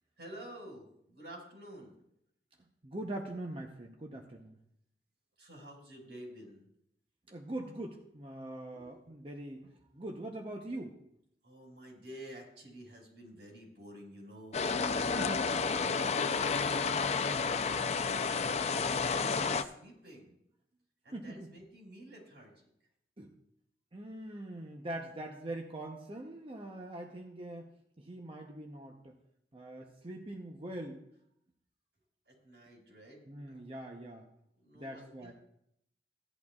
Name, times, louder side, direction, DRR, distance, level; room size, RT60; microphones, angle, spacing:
voice 1, 0.2-2.0 5.4-6.7 8.7-9.1 11.4-15.3 15.7-16.8 17.4-18.0 18.4-20.4 21.0-22.7 32.2-33.9 34.6-35.3, right 1 dB, 80° right, -2 dB, 4.8 m, -51 dB
voice 2, 2.8-4.6 7.3-11.0 15.2-15.4 17.2-17.5 21.1-21.5 23.2-23.3 23.9-27.7 28.0-29.2 29.5-31.1 33.3-34.3 34.7-35.3, right 1 dB, 30° right, 2 dB, 0.7 m, -42 dB
sound 1, 14.5-19.6, left 5 dB, 40° left, 0.4 m, -31 dB
16.0 x 11.0 x 2.4 m, 0.76 s
head